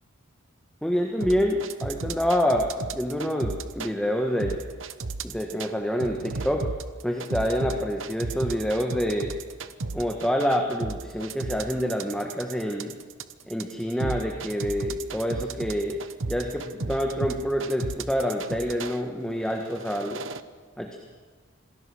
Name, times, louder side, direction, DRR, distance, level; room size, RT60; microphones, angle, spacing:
voice 1, 0.8-4.6 5.2-6.7 7.0-9.3 9.9-13.0 13.5-16.0 16.3-20.3 20.8-21.0, equal, 5° left, 2 dB, 1.5 m, -27 dB
sound 1, 1.2-3.9 4.4-5.7 6.0-19.0 19.6-20.4, right 3 dB, 70° right, 1.0 m, -34 dB
27.0 x 19.5 x 6.5 m, 1.5 s
head